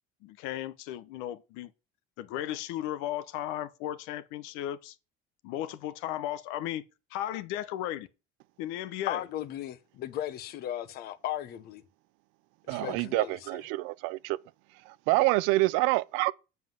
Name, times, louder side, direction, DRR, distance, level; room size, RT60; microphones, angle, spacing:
voice 1, 0.2-1.7 2.2-5.0 5.4-6.8 7.1-8.1 8.6-9.2 12.8-12.9, left 12 dB, 90° left, 0.9 m, -35 dB
voice 2, 9.1-11.8 12.7-13.4, left 12 dB, 55° left, 1.1 m, -36 dB
voice 3, 12.7-14.4 14.9-16.3, right 20 dB, 90° right, 0.5 m, -27 dB
7.5 x 5.7 x 7.6 m
cardioid pair, 155°, 20 cm